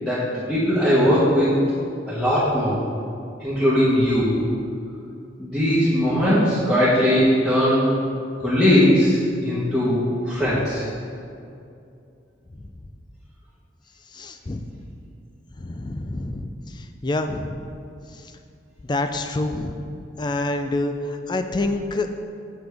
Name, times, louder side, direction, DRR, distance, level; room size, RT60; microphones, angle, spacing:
voice 1, 0.0-1.6 2.1-2.8 3.4-4.3 5.4-7.9 8.4-10.9, equal, ahead, -11 dB, 1.3 m, -19 dB
voice 2, 14.1-14.6 15.6-16.5 16.8-17.6 18.8-19.8 20.2-22.1, left 2 dB, 25° left, 7 dB, 0.4 m, -27 dB
8.0 x 6.7 x 3.4 m, 2.5 s
head